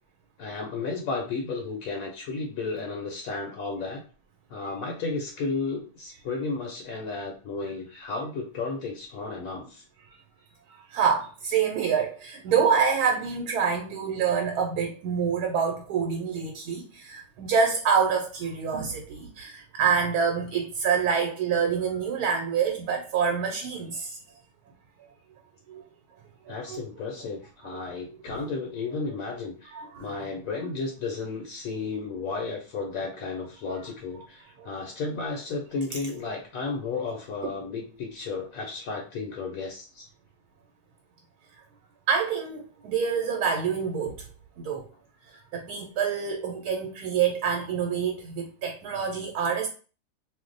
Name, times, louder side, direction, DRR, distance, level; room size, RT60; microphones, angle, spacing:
voice 1, 0.4-4.0 4.5-9.8 26.5-29.7 30.0-40.1, left 4 dB, 70° left, 1 dB, 0.9 m, -33 dB
voice 2, 10.7-24.2 25.7-25.8 26.5-26.8 28.3-28.4 29.7-30.1 34.6-34.7 42.1-44.2 44.6-44.9 45.5-49.7, right 6 dB, 80° right, 2 dB, 1.1 m, -26 dB
2.5 x 2.1 x 3.8 m, 0.38 s
omnidirectional pair, 1.6 m